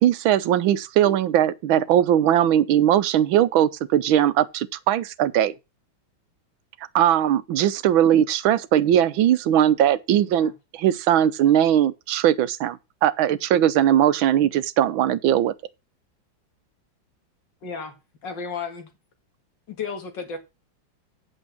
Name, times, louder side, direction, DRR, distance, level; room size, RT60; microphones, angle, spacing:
voice 1, 0.0-5.5 6.9-15.5, right 11 dB, 90° right, 1.6 m, -20 dB
voice 2, 17.6-18.0 18.2-18.9 19.7-20.4, left 5 dB, 65° left, 2.7 m, -33 dB
8.3 x 6.3 x 7.1 m
omnidirectional pair, 2.1 m